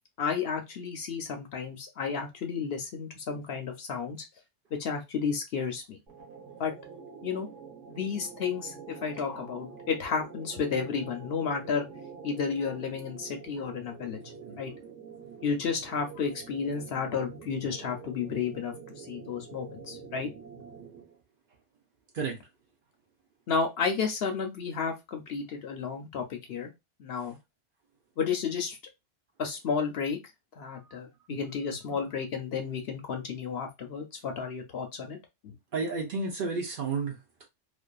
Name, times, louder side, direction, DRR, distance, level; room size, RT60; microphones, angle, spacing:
voice 1, 0.2-4.2 4.8-6.0 6.6-6.7 7.2-7.5 7.9-11.8 12.2-14.2 14.6-14.7 15.4-20.3 23.5-26.7 27.0-27.4 28.2-28.8 29.4-30.2 30.6-35.2 35.4-35.5, left 6 dB, 65° left, 0.7 m, -32 dB
sound 1, 6.1-21.2, right 5 dB, 80° right, 1.1 m, -46 dB
voice 2, 35.7-37.4, right 4 dB, 55° right, 0.7 m, -32 dB
2.5 x 2.4 x 2.2 m
omnidirectional pair, 1.2 m